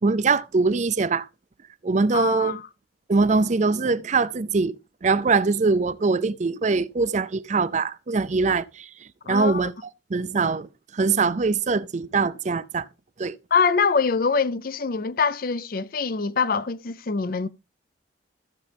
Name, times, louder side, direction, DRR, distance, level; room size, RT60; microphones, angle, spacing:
voice 1, 0.0-1.3 1.8-2.6 3.1-9.7 10.1-12.9 13.2-13.4, right 4 dB, 40° right, 0.5 m, -23 dB
voice 2, 2.1-2.6 9.3-9.7 13.5-17.5, left 5 dB, 50° left, 0.5 m, -24 dB
15.0 x 6.7 x 3.4 m
head